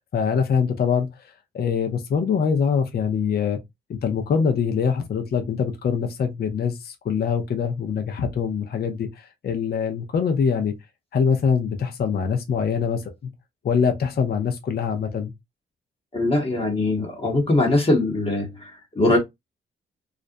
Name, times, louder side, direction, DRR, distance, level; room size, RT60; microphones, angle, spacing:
voice 1, 0.1-1.1 1.5-3.6 3.9-10.7 11.1-13.0 13.6-15.3, left 6 dB, 50° left, 0.6 m, -23 dB
voice 2, 16.1-19.2, left 2 dB, 30° left, 0.9 m, -21 dB
2.5 x 2.0 x 2.5 m
cardioid pair, 75°, 20 cm